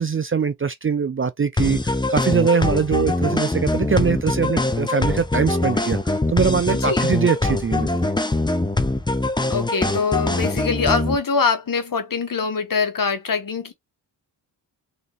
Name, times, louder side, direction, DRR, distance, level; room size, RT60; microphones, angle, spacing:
voice 1, 0.0-8.1, right 6 dB, 30° right, 0.5 m, -22 dB
sound 1, 1.6-11.2, left 2 dB, 10° left, 0.7 m, -23 dB
voice 2, 6.7-7.1 9.5-13.7, left 5 dB, 45° left, 1.3 m, -23 dB
3.7 x 2.9 x 3.5 m
supercardioid pair, 50°, 46 cm